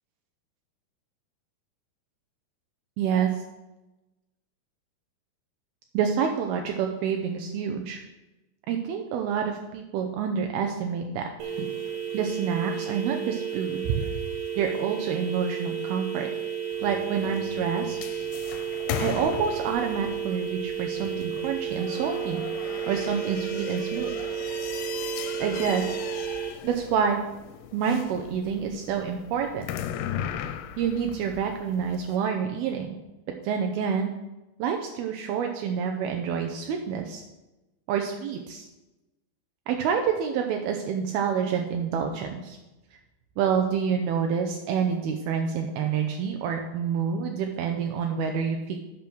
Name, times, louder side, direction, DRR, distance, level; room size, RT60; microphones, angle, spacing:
voice 1, 3.0-3.3 5.9-8.0 8.7-11.3 12.1-14.0 14.6-16.3 16.8-18.0 19.0-22.4 22.9-24.1 25.4-26.0 26.6-27.2 27.7-29.6 30.8-33.0 33.4-34.1 34.6-37.2 37.9-38.7 39.7-42.6 43.4-48.8, right 7 dB, 80° right, 3 dB, 2.6 m, -28 dB
sound 1, 11.4-26.5, right 8 dB, 60° right, 2.8 m, -32 dB
sound 2, 16.7-32.1, left 10 dB, 85° left, 2.6 m, -38 dB
8.5 x 6.1 x 6.2 m, 1.0 s
omnidirectional pair, 4.6 m